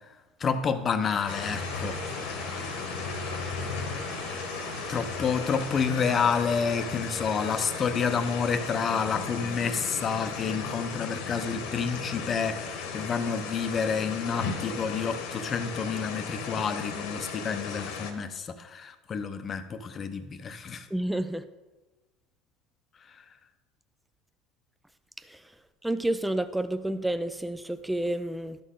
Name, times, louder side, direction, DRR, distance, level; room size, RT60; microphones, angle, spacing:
voice 1, 0.4-2.0 4.9-20.9, left 6 dB, 30° left, 9 dB, 0.7 m, -29 dB
sound 1, 1.0-16.8, right 3 dB, 50° right, 1.8 m, -47 dB
sound 2, 1.3-18.1, left 5 dB, 80° left, 1.3 m, -36 dB
voice 2, 20.9-21.4 25.2-25.6 25.8-28.6, right 1 dB, 5° right, 11 dB, 0.4 m, -30 dB
12.0 x 6.4 x 3.8 m, 1.1 s
supercardioid pair, 125°, 0 cm